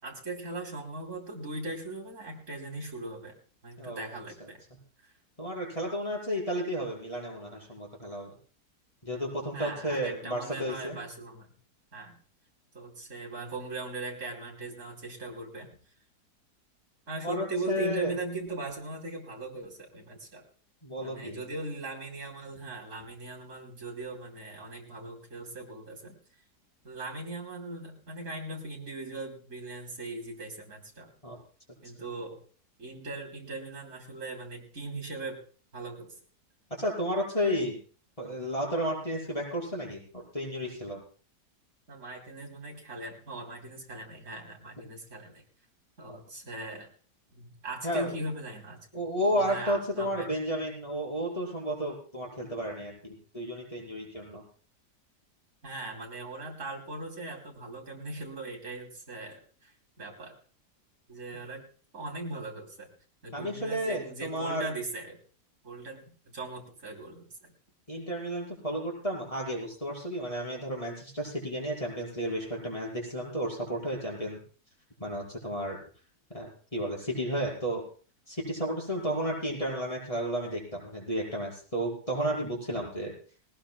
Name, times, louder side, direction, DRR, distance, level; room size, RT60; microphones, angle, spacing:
voice 1, 0.0-3.4 3.6-4.6 5.0-5.1 9.5-11.5 11.9-12.1 12.7-15.7 17.1-20.5 21.0-26.2 26.8-31.1 31.8-32.4 32.8-35.4 35.7-36.2 41.9-45.4 46.0-46.9 47.3-49.0 49.3-50.3 55.6-60.4 61.1-61.7 61.9-62.9 63.2-65.2 65.6-67.5, right 2 dB, 45° right, -1 dB, 3.7 m, -39 dB
voice 2, 3.8-4.2 5.4-8.3 9.0-11.0 17.2-18.1 20.8-21.4 31.2-31.4 36.8-37.8 38.2-41.0 47.8-48.1 48.9-54.4 63.3-64.7 67.9-74.4 75.0-75.8 76.3-77.8 78.3-83.1, equal, 20° left, -3 dB, 5.3 m, -32 dB
19.5 x 19.5 x 2.3 m, 0.41 s
omnidirectional pair, 1.8 m